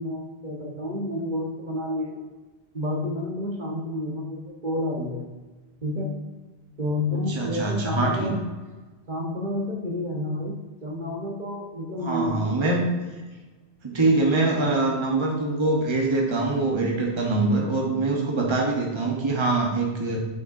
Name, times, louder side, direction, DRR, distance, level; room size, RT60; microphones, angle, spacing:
voice 1, 0.0-2.2 2.7-5.2 5.8-6.1 6.8-8.3 9.1-12.5, left 1 dB, 45° right, -2 dB, 1.2 m, -30 dB
voice 2, 7.3-8.4 12.0-12.8 13.8-20.2, right 2 dB, 25° right, -1 dB, 1.1 m, -24 dB
7.1 x 6.9 x 2.6 m, 1.3 s
omnidirectional pair, 1.1 m